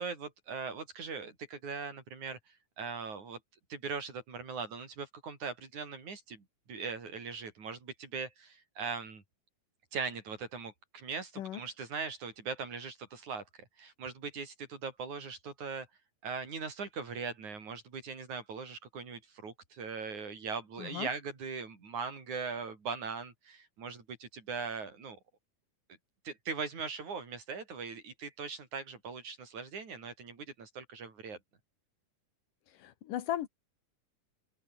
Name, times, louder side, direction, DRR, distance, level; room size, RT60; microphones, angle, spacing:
voice 1, 0.0-2.4 2.8-3.4 3.7-9.2 9.9-15.9 16.2-25.2 26.2-31.4, right 5 dB, 65° right, 6.3 m, -40 dB
voice 2, 20.8-21.1 32.7-33.5, left 12 dB, 85° left, 3.1 m, -36 dB
open air
omnidirectional pair, 3.7 m